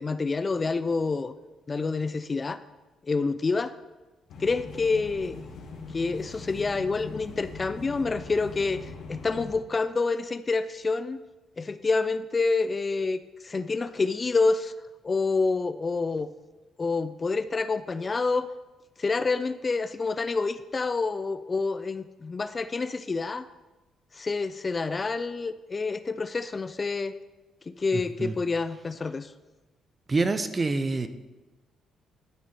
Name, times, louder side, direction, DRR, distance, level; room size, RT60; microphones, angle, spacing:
voice 1, 0.0-1.3 1.7-2.6 3.0-3.7 4.4-5.4 5.9-11.2 11.6-14.7 15.0-16.3 16.8-18.5 19.0-23.5 24.1-27.1 27.7-29.3, left 4 dB, 30° left, 13 dB, 0.4 m, -28 dB
sound 1, 4.3-9.5, left 4 dB, 80° left, 2.0 m, -41 dB
voice 2, 27.9-28.4 30.1-31.1, right 3 dB, 30° right, 10 dB, 0.7 m, -27 dB
12.0 x 6.1 x 4.4 m, 1.1 s
cardioid pair, 90°, 0 cm